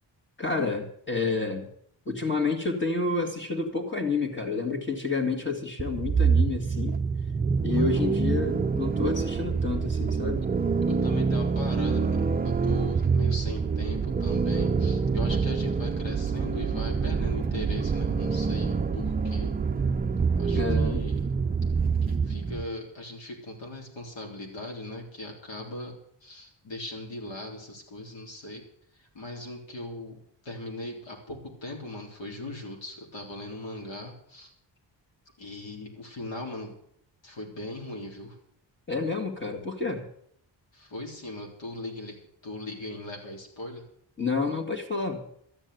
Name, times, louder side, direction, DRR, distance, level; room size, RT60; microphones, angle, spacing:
voice 1, 0.4-1.7 2.1-7.0 7.6-10.5 20.5-21.0 38.9-40.1 44.2-45.2, left 4 dB, 25° left, 4 dB, 2.2 m, -29 dB
sound 1, 5.8-22.7, right 5 dB, 20° right, 0.5 m, -26 dB
voice 2, 7.7-8.2 10.9-19.5 20.4-21.3 22.0-28.7 28.9-34.5 35.4-36.8 37.2-38.4 40.7-42.2 42.4-43.9, left 1 dB, 75° left, 1 dB, 3.7 m, -39 dB
13.0 x 9.0 x 9.2 m, 0.68 s
wide cardioid pair, 180°, 45 cm